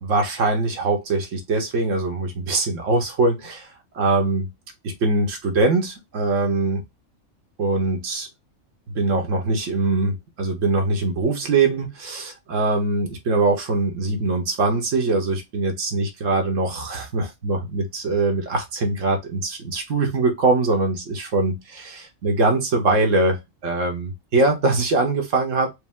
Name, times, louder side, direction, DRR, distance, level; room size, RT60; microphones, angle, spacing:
voice 1, 0.0-4.5 4.8-6.8 7.6-8.3 8.9-25.7, right 3 dB, 70° right, 1.5 m, -22 dB
5.2 x 2.2 x 3.6 m
omnidirectional pair, 1.4 m